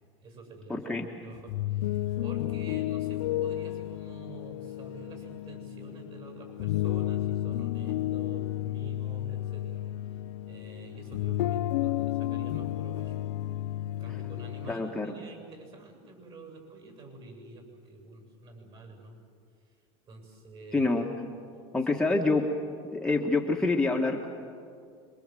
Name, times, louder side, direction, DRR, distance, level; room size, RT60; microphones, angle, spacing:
voice 1, 0.2-13.2 13.8-19.2 19.7-19.8 20.1-20.9 21.8-21.9, right 3 dB, 40° right, 4 dB, 7.7 m, -48 dB
voice 2, 0.7-1.1 14.7-15.1 20.7-21.0 21.7-22.5 22.9-24.3, left 3 dB, 5° left, -1 dB, 1.5 m, -26 dB
sound 1, 1.4-14.7, left 14 dB, 85° left, 0.7 m, -32 dB
26.0 x 23.0 x 7.8 m, 2.3 s
supercardioid pair, 130°, 15 cm